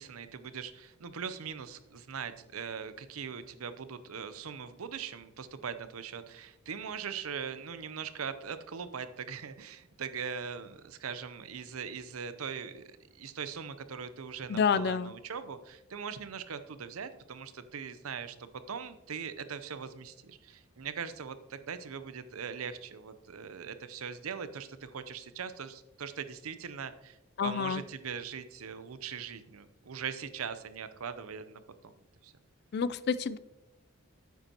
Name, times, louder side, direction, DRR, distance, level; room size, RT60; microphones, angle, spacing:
voice 1, 0.0-31.9 32.2-32.3, right 6 dB, 85° right, 12 dB, 0.6 m, -41 dB
voice 2, 14.5-15.1 27.4-27.8 32.7-33.4, left 6 dB, 50° left, 16 dB, 0.4 m, -28 dB
9.2 x 8.0 x 2.9 m, 0.91 s
head